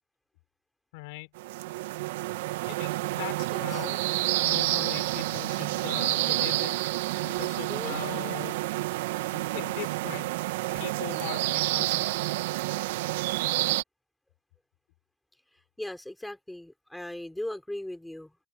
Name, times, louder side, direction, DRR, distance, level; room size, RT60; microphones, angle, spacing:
voice 1, 0.9-1.3 2.7-4.0 4.4-6.8 7.2-8.6 9.3-10.3 10.7-12.1, left 25 dB, 70° left, 3.8 m, -40 dB
sound 1, 1.4-13.8, right 18 dB, 80° right, 2.2 m, -29 dB
voice 2, 3.5-3.9 7.7-8.0 15.8-18.4, left 1 dB, 5° left, 5.4 m, -38 dB
open air
supercardioid pair, 105°, 0 cm